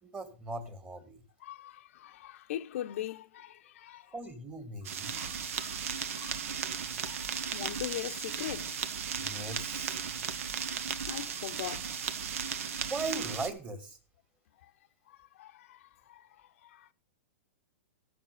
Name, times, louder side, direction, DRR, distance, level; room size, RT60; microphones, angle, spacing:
voice 1, 0.0-1.2 4.1-5.2 9.2-10.0 12.9-14.0, right 2 dB, 15° right, 2.2 m, -39 dB
voice 2, 1.4-4.2 5.0-6.7 7.0-8.8 11.1-12.0 15.1-16.9, left 12 dB, 65° left, 0.8 m, -42 dB
sound 1, 4.8-13.5, right 7 dB, 70° right, 1.4 m, -36 dB
14.5 x 6.5 x 6.6 m
hypercardioid pair, 140°, 8 cm